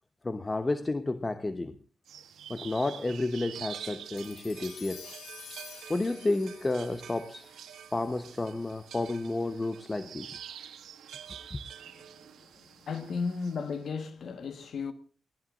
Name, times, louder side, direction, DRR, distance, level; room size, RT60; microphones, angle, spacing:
voice 1, 0.2-1.8 2.5-5.1 5.9-7.5 7.9-10.4 11.5-11.6, left 2 dB, 25° left, 0.9 m, -31 dB
sound 1, 2.1-13.8, right 9 dB, 85° right, 1.7 m, -47 dB
sound 2, 4.2-8.7, left 8 dB, 90° left, 2.1 m, -50 dB
voice 2, 11.9-14.9, left 5 dB, 65° left, 1.4 m, -35 dB
29.5 x 19.0 x 2.5 m
cardioid pair, 80°, 0 cm